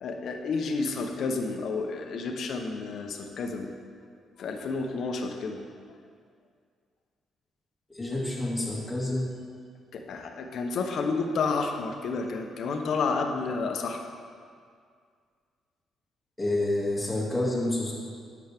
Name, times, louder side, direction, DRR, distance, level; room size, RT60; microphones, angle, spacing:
voice 1, 0.0-3.7 4.4-5.6 9.9-14.0, left 4 dB, 65° left, 4 dB, 0.9 m, -30 dB
voice 2, 7.9-9.3 16.4-17.9, left 1 dB, 15° left, -4 dB, 2.3 m, -28 dB
10.5 x 7.1 x 3.5 m, 2.1 s
cardioid pair, 90°, 0 cm